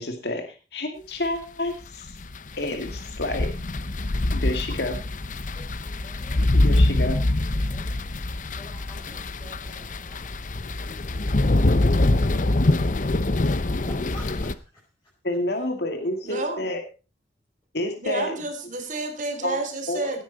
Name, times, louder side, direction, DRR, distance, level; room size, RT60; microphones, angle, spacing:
voice 1, 0.0-2.2 2.6-3.5 4.3-5.0 6.5-7.2 15.2-16.8 17.7-18.4 19.4-19.6 19.9-20.1, left 1 dB, 65° left, 2.4 m, -29 dB
sound 1, 1.8-14.5, left 2 dB, 45° left, 0.8 m, -24 dB
voice 2, 5.5-8.1 8.6-10.5 10.9-14.6 15.8-16.5, left 1 dB, 20° left, 6.0 m, -48 dB
voice 3, 16.2-16.7 17.9-20.2, right 2 dB, 45° right, 3.2 m, -30 dB
17.5 x 10.0 x 4.1 m
head